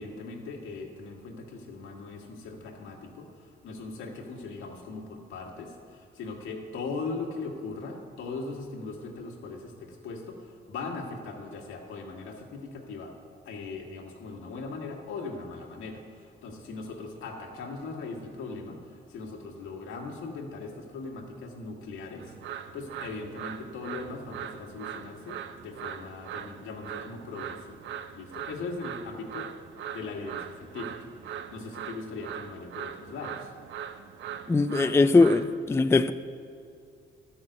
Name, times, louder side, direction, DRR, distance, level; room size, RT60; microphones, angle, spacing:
voice 1, 0.0-13.1 13.5-27.9 28.1-29.5 29.9-33.5, left 3 dB, 85° left, 1.7 m, -39 dB
sound 1, 22.2-35.6, right 9 dB, 70° right, 0.6 m, -41 dB
voice 2, 34.5-36.1, left 3 dB, 15° left, 0.4 m, -21 dB
12.0 x 5.9 x 7.8 m
cardioid pair, 90°, 20 cm